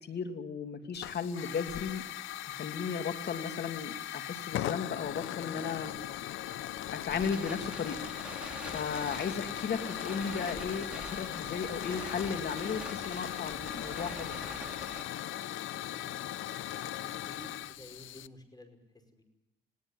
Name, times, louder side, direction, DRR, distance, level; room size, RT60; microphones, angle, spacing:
voice 1, 0.0-2.0 2.5-5.9 6.9-8.0 8.7-14.4, left 6 dB, 55° left, 7 dB, 2.7 m, -35 dB
Hiss / Fire, 0.9-18.3, left 12 dB, 80° left, 0.7 m, -39 dB
Crackle, 5.8-15.0, right 1 dB, 5° right, 4.7 m, -46 dB
voice 2, 17.0-18.8 19.1-19.2, left 1 dB, 20° left, 7 dB, 5.2 m, -52 dB
20.5 x 17.5 x 9.8 m, 1.0 s
cardioid pair, 90°, 20 cm